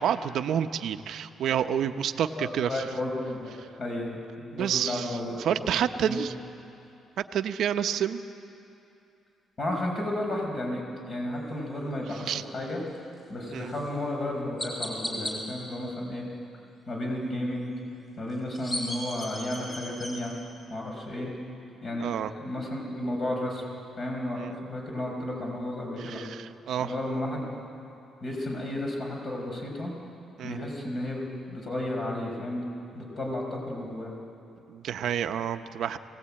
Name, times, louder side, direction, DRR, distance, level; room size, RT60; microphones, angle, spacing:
voice 1, 0.0-2.8 4.5-5.1 5.4-6.3 7.3-8.2 12.3-12.4 13.5-13.7 22.0-22.3 24.4-24.5 26.0-26.9 30.4-30.6 34.7-36.0, right 9 dB, 70° right, 8 dB, 0.8 m, -29 dB
voice 2, 2.4-3.5 3.8-5.7 6.0-6.2 9.6-12.8 13.3-16.3 16.9-17.7 18.2-20.3 20.7-21.3 21.8-23.6 24.0-26.2 26.8-27.6 28.2-29.9 30.4-32.7 32.9-34.1, left 1 dB, 40° left, 0 dB, 5.4 m, -33 dB
Chirp tweet, 13.7-13.8 14.6-15.3 18.3-20.1, equal, 20° left, 6.2 m, -35 dB
22.5 x 18.5 x 8.8 m, 2.7 s
cardioid pair, 125°, 0 cm